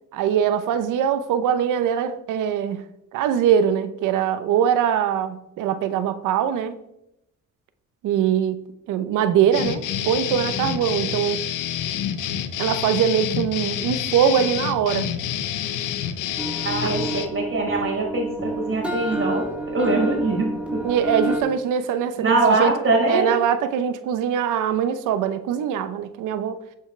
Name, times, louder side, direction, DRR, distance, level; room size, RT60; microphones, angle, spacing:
voice 1, 0.1-2.8 3.1-6.8 8.0-8.6 8.9-11.4 12.6-15.1 16.8-17.2 20.8-22.7 23.1-26.6, right 8 dB, 90° right, 0.8 m, -22 dB
sound 1, 9.5-17.3, left 10 dB, 85° left, 0.9 m, -28 dB
sound 2, 16.4-21.4, right 1 dB, 5° right, 3.1 m, -29 dB
voice 2, 16.6-20.8 22.2-23.3, right 2 dB, 45° right, 4.5 m, -23 dB
12.5 x 8.3 x 3.3 m
cardioid pair, 90°, 30 cm